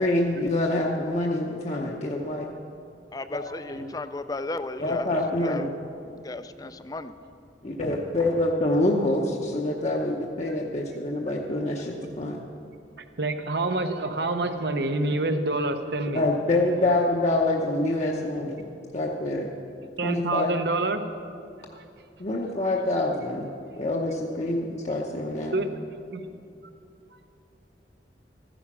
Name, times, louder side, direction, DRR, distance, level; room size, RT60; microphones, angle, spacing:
voice 1, 0.0-2.5 3.3-3.4 3.7-3.8 4.8-5.7 7.6-12.4 16.1-18.7 18.9-19.5 20.0-20.5 22.2-23.5 23.8-25.5, left 1 dB, 40° left, -1 dB, 0.8 m, -26 dB
voice 2, 3.1-5.7 6.2-7.1, left 2 dB, 20° left, 11 dB, 0.4 m, -34 dB
voice 3, 13.2-16.2 20.0-21.1 21.7-21.8 25.5-25.7 26.1-26.2, right 2 dB, 65° right, 8 dB, 0.9 m, -27 dB
14.5 x 10.0 x 6.1 m, 2.7 s
head